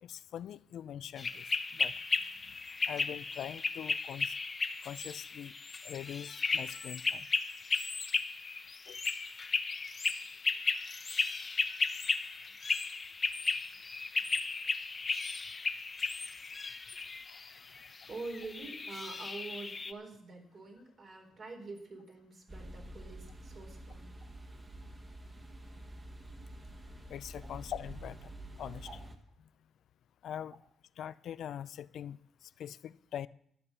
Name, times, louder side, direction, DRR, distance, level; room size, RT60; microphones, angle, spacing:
voice 1, 0.0-1.4 1.7-2.0 2.5-2.6 2.9-4.3 4.8-7.3 8.9-9.0 10.2-10.6 17.3-17.7 27.1-28.3 28.6-28.9 30.2-30.6 31.0-33.3, left 10 dB, 70° left, 0.5 m, -43 dB
sound 1, 1.2-19.9, left 4 dB, 35° left, 0.9 m, -35 dB
voice 2, 18.1-24.2 24.8-25.0 28.9-29.0, right 3 dB, 45° right, 4.0 m, -46 dB
sound 2, 22.5-29.2, right 1 dB, 25° right, 1.9 m, -48 dB
12.5 x 9.5 x 6.8 m
cardioid pair, 90°, 0 cm